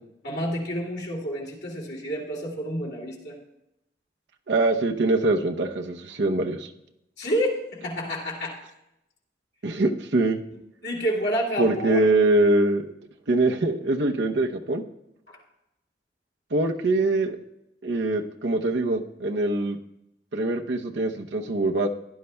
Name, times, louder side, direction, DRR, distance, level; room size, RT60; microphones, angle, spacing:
voice 1, 0.2-3.4 7.2-8.6 10.8-12.1 15.3-15.4, equal, 65° left, -3 dB, 2.6 m, -29 dB
voice 2, 4.5-6.7 9.6-10.4 11.6-12.8 13.3-14.8 16.5-17.4 17.8-19.8 20.3-21.9, right 2 dB, 80° right, 2 dB, 0.8 m, -23 dB
16.5 x 11.0 x 2.3 m, 0.86 s
head